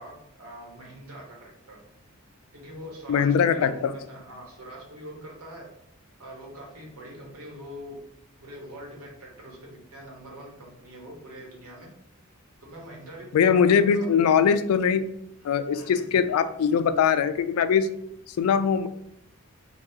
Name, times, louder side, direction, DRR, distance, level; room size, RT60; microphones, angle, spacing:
voice 1, 0.0-1.8 2.5-5.7 6.2-8.0 8.4-11.9 12.6-14.1 15.7-16.1, equal, 90° right, -2 dB, 1.1 m, -43 dB
voice 2, 3.1-3.9 13.3-15.1 15.4-17.9 18.4-18.9, left 7 dB, 85° left, 14 dB, 0.3 m, -21 dB
3.5 x 2.3 x 2.8 m, 0.75 s
head